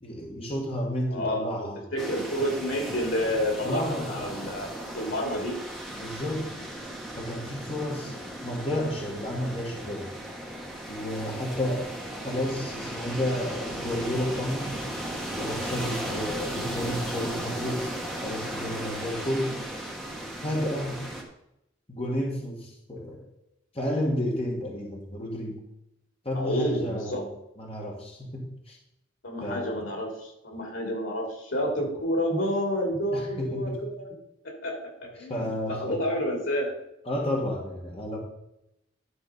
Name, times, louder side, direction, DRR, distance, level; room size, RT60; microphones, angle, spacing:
voice 1, 0.0-1.8 3.6-4.2 5.9-6.5 7.2-10.1 10.9-11.9 12.2-14.8 15.3-18.0 18.2-19.5 20.4-21.0 21.9-23.2 23.7-25.6 26.2-27.3 27.6-28.8 29.4-29.8 33.1-33.8 35.2-36.1 37.1-38.2, left 1 dB, 30° left, -1 dB, 1.8 m, -31 dB
voice 2, 1.1-1.6 1.9-4.7 4.9-5.6 26.4-27.2 29.2-34.1 34.4-36.7, equal, 80° left, 0 dB, 3.4 m, -29 dB
sound 1, 2.0-21.2, right 1 dB, ahead, 1.5 m, -36 dB
11.5 x 5.0 x 5.3 m, 0.83 s
head